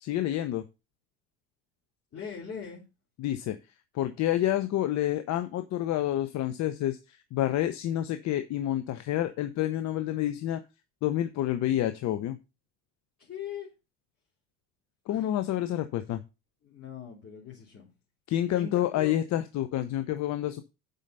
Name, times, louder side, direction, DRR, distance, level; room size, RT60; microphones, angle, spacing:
voice 1, 0.0-0.6 3.2-3.6 3.9-10.6 11.0-12.4 15.1-16.2 18.3-20.6, left 12 dB, 60° left, 0.8 m, -28 dB
voice 2, 2.1-2.8 13.2-13.7 15.1-15.3 16.6-17.9 18.5-19.2, left 7 dB, 40° left, 3.4 m, -41 dB
7.5 x 5.5 x 5.4 m
supercardioid pair, 95°, 32 cm